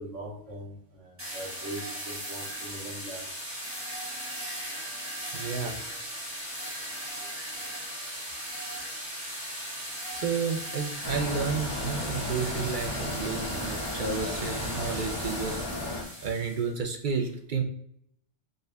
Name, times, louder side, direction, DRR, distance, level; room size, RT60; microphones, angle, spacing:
voice 1, 0.0-3.2, right 1 dB, 75° right, -3 dB, 1.5 m, -41 dB
sound 1, 1.2-16.7, equal, 10° right, 1.3 m, -38 dB
voice 2, 5.3-5.8 10.1-15.6 16.2-17.6, right 5 dB, 55° right, 3 dB, 0.6 m, -31 dB
sound 2, 11.0-16.0, left 1 dB, 30° left, 0.4 m, -34 dB
6.4 x 2.5 x 2.2 m, 0.69 s
omnidirectional pair, 1.3 m